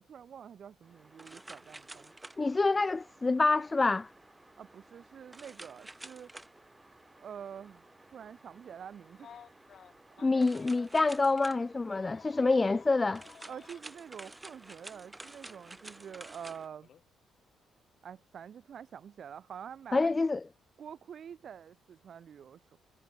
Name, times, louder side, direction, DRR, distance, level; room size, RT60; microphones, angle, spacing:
voice 1, 0.0-2.1 4.6-6.3 7.2-7.8 8.1-9.4 10.2-10.6 13.5-16.9 18.0-20.2 20.8-22.8, right 8 dB, 55° right, 2.0 m, -47 dB
sound 1, 0.8-16.7, right 2 dB, 15° right, 6.8 m, -52 dB
voice 2, 2.4-4.1 10.2-13.2 19.9-20.4, left 3 dB, 25° left, 0.6 m, -27 dB
Telephone, 9.2-11.0 11.9-13.8 15.2-15.3 16.8-17.0, left 8 dB, 60° left, 2.8 m, -54 dB
cardioid pair, 90°, 0 cm